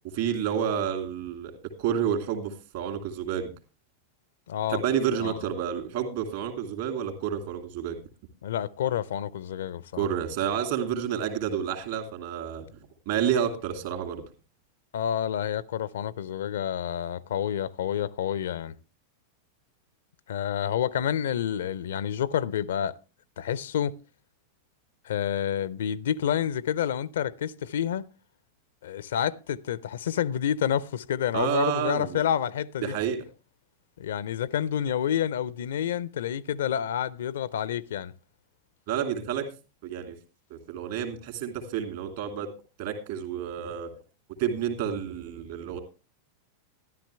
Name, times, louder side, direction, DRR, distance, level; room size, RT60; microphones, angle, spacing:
voice 1, 0.1-1.5 1.8-3.5 4.7-8.0 10.0-12.7 13.1-14.2 31.3-32.2 32.8-33.2 38.9-39.5 39.8-40.2 40.5-42.5 42.8-43.9 44.4-45.8, right 8 dB, 55° right, 2.5 m, -29 dB
voice 2, 4.5-4.8 5.2-5.4 8.4-10.1 14.9-18.7 20.3-23.0 23.4-24.0 25.0-28.1 28.8-32.9 34.0-38.1, left 9 dB, 60° left, 0.5 m, -29 dB
13.0 x 11.0 x 3.4 m
figure-of-eight pair, 90°, 0 cm